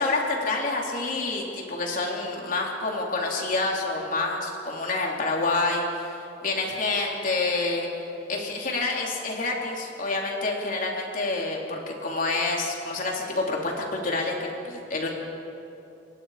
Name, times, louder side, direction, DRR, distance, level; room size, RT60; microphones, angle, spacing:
voice 1, 0.0-6.1 6.4-7.9 8.3-15.1, left 3 dB, 50° left, -1 dB, 3.7 m, -28 dB
29.5 x 23.0 x 5.1 m, 2.9 s
head